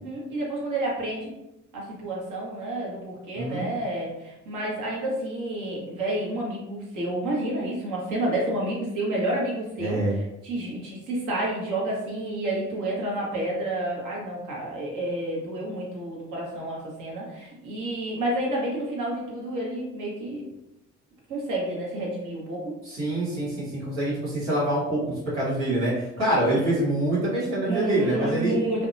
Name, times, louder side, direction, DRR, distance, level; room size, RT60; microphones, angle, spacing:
voice 1, 0.0-1.3 1.7-20.5 21.3-22.7 26.5-26.6 27.6-28.9, right 1 dB, 65° right, -3 dB, 1.1 m, -30 dB
voice 2, 3.3-3.7 9.8-10.2 22.8-28.5, right 1 dB, 85° right, -8 dB, 1.3 m, -25 dB
2.6 x 2.2 x 2.6 m, 0.90 s
hypercardioid pair, 50°, 33 cm